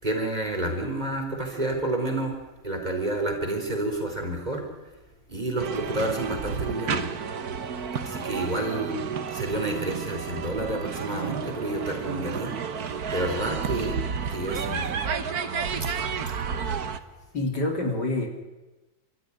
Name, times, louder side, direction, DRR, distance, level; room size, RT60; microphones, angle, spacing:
voice 1, 0.0-2.3 2.6-4.6 5.3-7.0 8.0-9.0 9.3-12.6 13.1-14.0 14.3-14.9, right 1 dB, 20° right, 2 dB, 4.2 m, -29 dB
sound 1, 5.6-17.0, right 6 dB, 55° right, 1.6 m, -31 dB
voice 2, 17.3-18.3, left 2 dB, 60° left, 2 dB, 4.0 m, -26 dB
29.0 x 14.0 x 10.0 m, 1.1 s
omnidirectional pair, 2.1 m